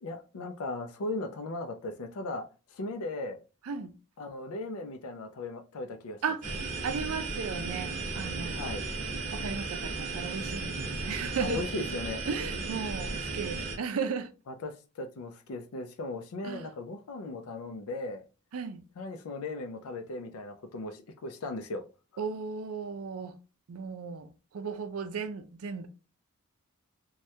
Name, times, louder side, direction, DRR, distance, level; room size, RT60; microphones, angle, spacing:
voice 1, 0.0-3.4 4.2-6.2 8.5-8.8 11.4-12.2 14.5-18.2 19.0-21.8, left 2 dB, 80° left, 0.4 m, -37 dB
sound 1, 6.4-13.8, right 3 dB, 35° right, 0.8 m, -35 dB
voice 2, 6.8-8.7 9.3-11.9 12.3-14.3 16.4-16.7 18.5-18.8 22.2-23.4 23.7-25.9, right 5 dB, 75° right, 0.4 m, -35 dB
3.2 x 2.2 x 2.7 m
head